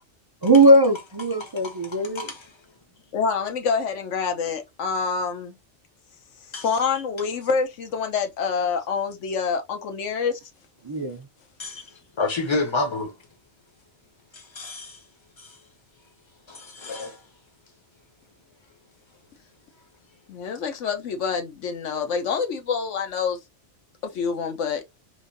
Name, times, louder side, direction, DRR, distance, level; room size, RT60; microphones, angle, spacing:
voice 1, 0.4-2.3 10.8-11.2, right 1 dB, 30° right, 0.4 m, -19 dB
voice 2, 1.4-2.5 6.5-6.6 11.6-11.8 12.2-13.1 14.3-15.0 15.4-15.5 16.5-17.2, left 3 dB, 25° left, 0.8 m, -30 dB
voice 3, 3.1-5.5 6.5-10.4 20.3-23.4 24.0-24.8, left 5 dB, 75° left, 1.1 m, -26 dB
3.6 x 2.7 x 2.6 m
omnidirectional pair, 1.3 m